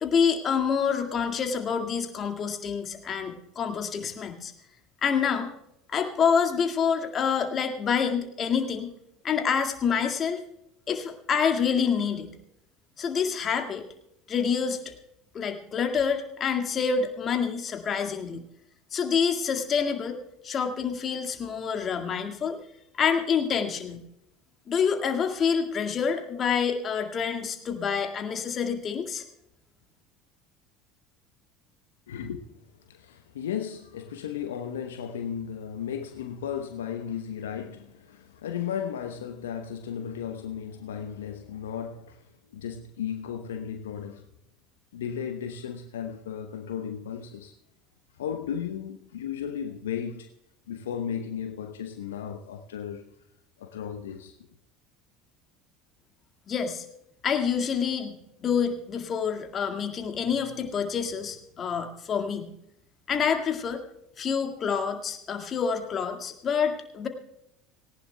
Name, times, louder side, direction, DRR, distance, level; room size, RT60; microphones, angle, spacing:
voice 1, 0.0-4.5 5.0-5.5 5.9-8.9 9.2-10.4 10.9-12.3 13.0-13.8 14.3-14.8 15.3-18.4 18.9-22.6 22.9-24.0 24.7-29.2 56.5-56.8 57.2-58.1 58.4-62.5 63.1-63.8 64.2-67.1, left 6 dB, 35° left, 2.0 m, -27 dB
voice 2, 32.1-32.4 32.9-44.2 44.9-47.5 48.2-50.3 50.7-53.1 53.6-54.3, left 8 dB, 75° left, 0.8 m, -35 dB
19.0 x 18.0 x 2.3 m
figure-of-eight pair, 70°, 0 cm